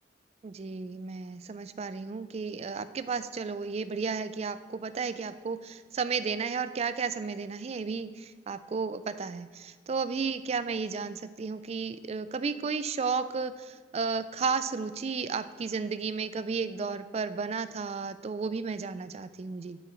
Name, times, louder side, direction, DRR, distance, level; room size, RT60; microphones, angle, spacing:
voice 1, 0.4-19.8, right 5 dB, 35° right, 13 dB, 0.3 m, -33 dB
11.0 x 7.0 x 4.3 m, 1.5 s
head